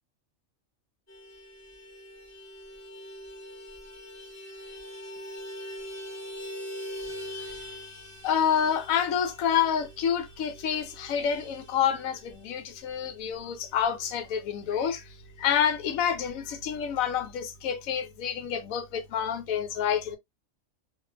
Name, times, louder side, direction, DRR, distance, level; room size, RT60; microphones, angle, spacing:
Vehicle horn car horn honking, 1.1-15.0 15.3-15.4 15.7-15.9 16.1-16.8, equal, 15° left, 0.7 m, -43 dB
voice 1, 8.2-15.0 15.4-20.2, left 8 dB, 85° left, 1.1 m, -28 dB
2.9 x 2.2 x 2.3 m
omnidirectional pair, 1.4 m